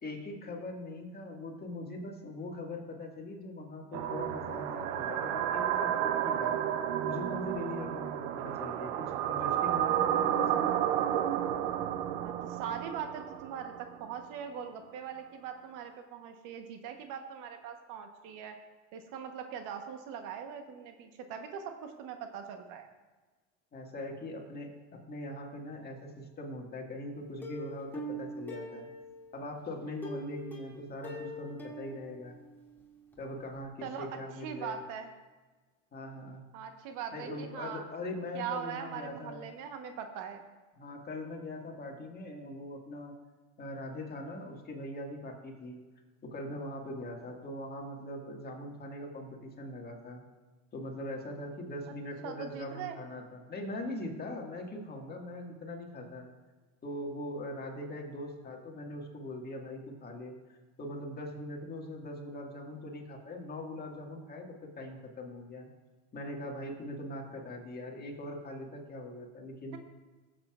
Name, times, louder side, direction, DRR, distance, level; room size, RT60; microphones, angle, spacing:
voice 1, 0.0-8.9 9.2-10.8 23.7-24.7 25.1-28.9 29.3-32.4 33.2-34.8 35.9-36.4 37.1-39.4 40.8-43.1 43.6-45.8 46.2-50.2 50.7-56.3 56.8-65.7 66.1-69.8, left 1 dB, 25° left, 0 dB, 1.8 m, -41 dB
sound 1, 3.9-14.0, right 10 dB, 75° right, 0.7 m, -31 dB
voice 2, 12.2-18.6 18.9-22.9 33.8-35.1 36.5-37.8 38.3-40.4 52.2-53.0, right 8 dB, 60° right, 6 dB, 1.1 m, -41 dB
Plucked string instrument, 27.4-29.4 30.0-32.8 33.1-33.2 33.6-33.7, right 1 dB, 5° left, 2.2 m, -43 dB
15.5 x 7.8 x 2.4 m, 1.3 s
supercardioid pair, 105°, 37 cm